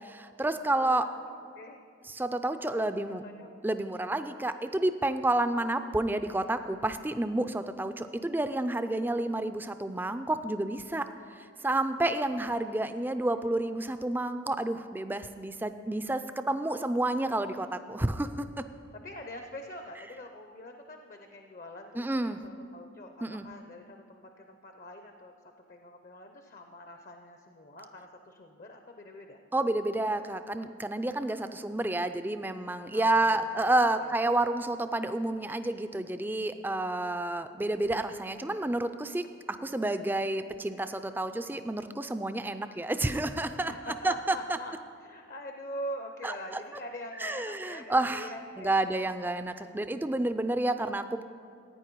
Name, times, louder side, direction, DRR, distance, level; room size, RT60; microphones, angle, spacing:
voice 1, 0.0-1.1 2.1-3.2 3.6-11.1 11.4-18.6 22.0-22.4 23.2-23.4 29.5-43.7 44.0-44.4 46.2-46.3 47.2-48.3 48.6-51.2, right 2 dB, 10° right, 10 dB, 0.3 m, -30 dB
voice 2, 0.6-1.8 2.6-2.9 3.2-3.5 12.3-12.5 18.9-29.4 32.9-34.1 43.7-44.8 45.0-48.7, left 1 dB, 40° left, 5 dB, 0.6 m, -44 dB
15.5 x 9.3 x 4.6 m, 2.4 s
head